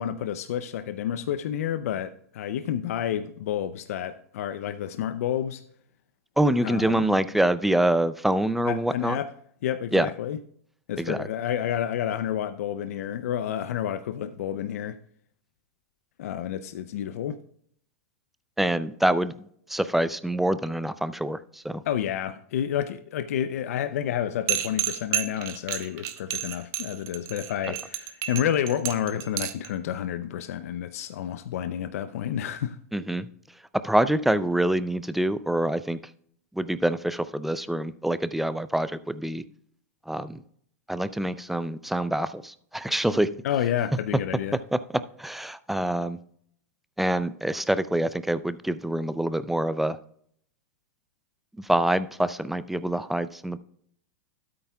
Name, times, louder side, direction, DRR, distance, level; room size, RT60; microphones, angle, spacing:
voice 1, 0.0-5.6 6.6-7.0 8.7-9.3 9.6-10.4 10.9-15.0 16.2-17.4 21.8-32.8 43.4-44.6, left 10 dB, 75° left, 0.5 m, -30 dB
voice 2, 6.4-9.2 9.9-10.1 11.0-11.3 18.6-19.3 19.7-21.8 32.9-33.3 33.8-36.0 36.6-39.4 40.1-40.4 40.9-43.3 44.7-44.8 45.2-46.2 47.0-50.0 51.6-53.6, right 1 dB, ahead, 0.4 m, -25 dB
sound 1, 24.5-29.7, right 11 dB, 40° right, 1.1 m, -30 dB
13.0 x 8.6 x 2.3 m
hypercardioid pair, 130°, 8 cm